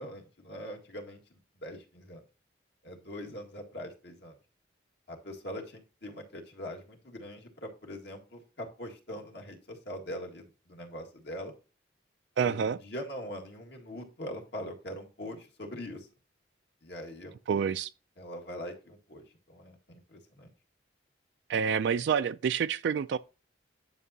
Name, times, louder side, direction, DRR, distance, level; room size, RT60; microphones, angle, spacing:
voice 1, 0.0-2.2 2.8-4.3 5.1-11.5 12.4-16.1 16.8-17.3 18.2-20.5, equal, 60° left, 1.9 m, -42 dB
voice 2, 12.4-12.8 17.5-17.9 21.5-23.2, right 7 dB, 65° right, 0.3 m, -28 dB
11.0 x 6.0 x 2.8 m
head